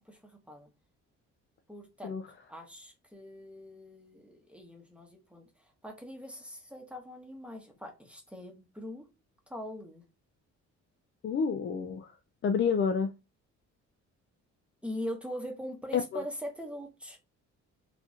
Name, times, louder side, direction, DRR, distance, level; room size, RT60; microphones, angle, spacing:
voice 1, 0.1-0.7 1.7-2.2 2.5-5.4 5.8-9.1 9.5-10.0 14.8-17.2, equal, 5° right, 0.9 m, -42 dB
voice 2, 11.2-12.1 12.4-13.1 15.9-16.2, left 6 dB, 40° left, 0.4 m, -29 dB
3.9 x 2.7 x 2.4 m
cardioid pair, 90°, 30 cm